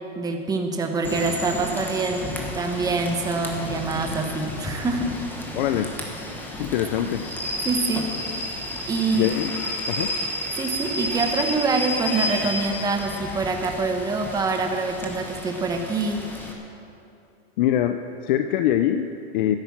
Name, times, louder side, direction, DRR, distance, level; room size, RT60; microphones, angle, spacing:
voice 1, 0.1-5.1 7.6-8.1 8.9-9.3 10.5-16.3, right 3 dB, 10° right, 4 dB, 1.1 m, -25 dB
Rain / Train, 1.0-16.5, left 1 dB, 5° left, 1.4 m, -32 dB
voice 2, 5.5-6.0 6.6-7.2 9.1-9.5 9.9-10.1 17.6-19.6, left 11 dB, 50° left, 8 dB, 0.6 m, -23 dB
13.5 x 11.0 x 7.3 m, 2.7 s
supercardioid pair, 150°, 31 cm